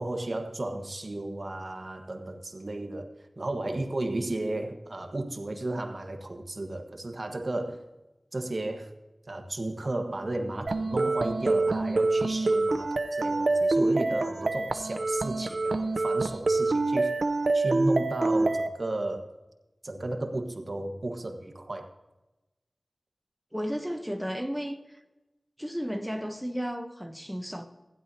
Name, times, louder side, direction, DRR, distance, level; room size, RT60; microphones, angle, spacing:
voice 1, 0.0-7.8 8.3-8.9 9.3-17.1 17.5-19.3 19.8-21.9, right 2 dB, 50° right, 1.3 m, -34 dB
sound 1, 10.7-18.7, right 2 dB, 70° right, 0.6 m, -26 dB
voice 2, 23.5-25.0 25.6-27.7, equal, ahead, 0.9 m, -33 dB
15.5 x 10.5 x 2.8 m
wide cardioid pair, 50°, 0 cm